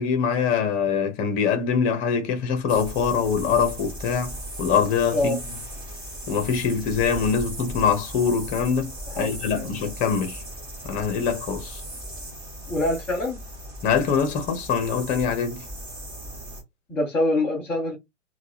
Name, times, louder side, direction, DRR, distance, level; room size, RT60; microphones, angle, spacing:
voice 1, 0.0-5.4 6.3-10.4 10.8-11.8 13.8-15.6, left 6 dB, 20° left, 0.9 m, -24 dB
sound 1, 2.7-16.6, right 1 dB, 10° right, 1.7 m, -37 dB
voice 2, 9.1-9.7 12.7-13.4 16.9-18.0, left 2 dB, 5° left, 0.4 m, -25 dB
3.8 x 2.4 x 2.9 m
figure-of-eight pair, 120°, 37 cm